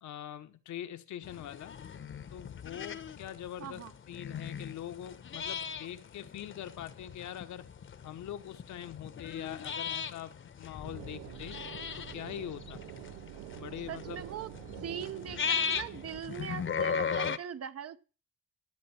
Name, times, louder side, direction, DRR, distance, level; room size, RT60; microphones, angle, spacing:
voice 1, 0.0-1.8 2.3-7.7 8.0-11.6 11.9-12.9 13.6-14.2, left 11 dB, 70° left, 1.1 m, -43 dB
sheep on pasture, 1.2-17.4, left 6 dB, 40° left, 1.0 m, -38 dB
voice 2, 3.6-3.9 13.9-14.5 14.8-18.0, right 8 dB, 50° right, 1.0 m, -41 dB
sound 1, 10.8-16.2, right 17 dB, 85° right, 0.5 m, -47 dB
14.0 x 7.7 x 4.4 m
cardioid pair, 90°, 30 cm